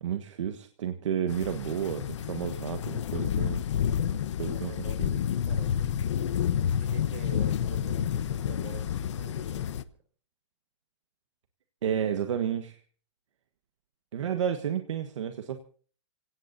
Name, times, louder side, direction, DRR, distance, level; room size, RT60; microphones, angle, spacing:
voice 1, 0.0-3.6 4.4-4.7 5.0-5.2 11.8-12.8 14.1-15.6, right 9 dB, 80° right, 7 dB, 1.6 m, -31 dB
sound 1, 1.3-9.8, left 9 dB, 75° left, 1.0 m, -29 dB
voice 2, 4.5-5.1 5.4-6.0 6.5-9.9, right 6 dB, 60° right, 8 dB, 5.1 m, -46 dB
26.5 x 17.5 x 2.8 m, 0.43 s
hypercardioid pair, 165°, 15 cm